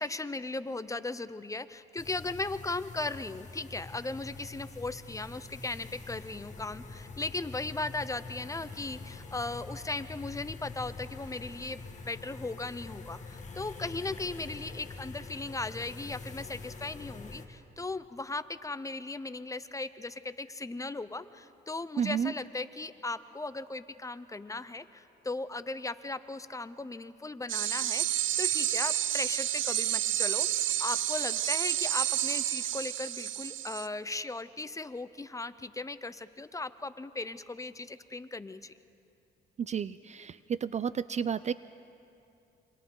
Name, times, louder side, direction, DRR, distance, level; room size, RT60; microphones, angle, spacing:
voice 1, 0.0-38.7, left 3 dB, 15° left, 13 dB, 0.7 m, -37 dB
sound 1, 2.0-17.5, left 3 dB, 35° left, 2.1 m, -45 dB
voice 2, 22.0-22.3 39.6-41.5, right 7 dB, 35° right, 16 dB, 0.4 m, -31 dB
sound 2, 27.5-33.9, right 13 dB, 75° right, 0.6 m, -30 dB
27.5 x 24.5 x 3.9 m, 2.6 s
cardioid pair, 90°, 20 cm